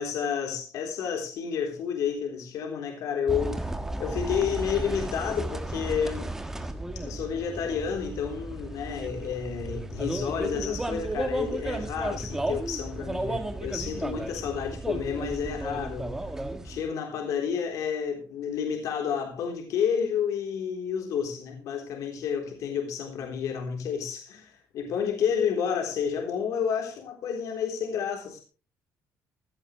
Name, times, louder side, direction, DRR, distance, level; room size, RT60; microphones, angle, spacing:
voice 1, 0.0-3.7 4.0-6.3 7.0-16.1 16.6-28.4, left 7 dB, 60° left, 3.8 m, -30 dB
sound 1, 3.3-16.8, right 1 dB, 5° right, 1.4 m, -34 dB
16.5 x 14.0 x 3.3 m
cardioid pair, 175°, 6 cm